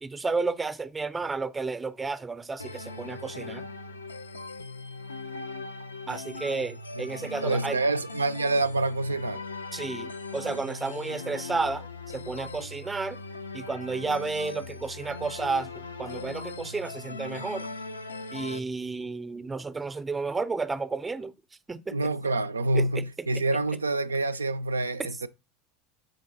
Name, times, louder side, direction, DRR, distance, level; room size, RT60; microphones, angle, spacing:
voice 1, 0.0-3.7 6.1-7.8 9.7-13.2 13.5-17.7 18.3-21.3 21.7-22.0 22.7-23.4, right 4 dB, 15° right, 0.5 m, -32 dB
sound 1, 2.6-18.6, left 3 dB, 80° left, 0.4 m, -39 dB
voice 2, 7.0-9.5 21.9-25.3, right 2 dB, 80° right, 0.3 m, -27 dB
6.6 x 3.8 x 3.9 m
figure-of-eight pair, 75°, 0 cm